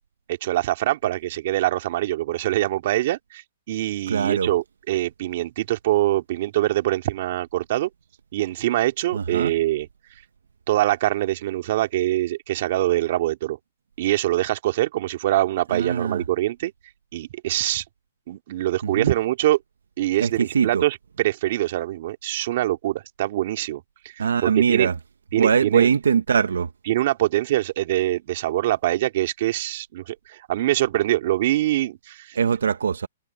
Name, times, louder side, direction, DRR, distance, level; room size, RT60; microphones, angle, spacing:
voice 1, 0.3-3.4 3.7-7.9 8.3-9.9 10.7-13.6 14.0-16.7 17.1-17.8 18.3-19.6 20.0-24.9 25.3-25.9 26.9-32.4, right 15 dB, 50° right, 2.4 m, -24 dB
voice 2, 4.1-4.5 9.1-9.5 15.7-16.2 18.8-19.1 20.2-20.8 24.2-24.9 25.4-26.7 32.4-33.1, right 6 dB, 85° right, 1.0 m, -22 dB
hypercardioid pair, 145°, 0 cm